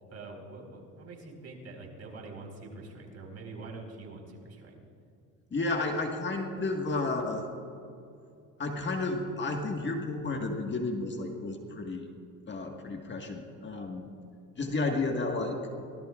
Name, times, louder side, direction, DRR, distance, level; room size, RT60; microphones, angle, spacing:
voice 1, 0.1-4.8, right 3 dB, 45° right, 1 dB, 4.7 m, -45 dB
voice 2, 5.5-7.5 8.6-12.1 12.5-14.1 14.6-15.6, left 2 dB, 30° left, 3 dB, 1.8 m, -32 dB
25.0 x 18.0 x 2.5 m, 2.5 s
supercardioid pair, 80°, 37 cm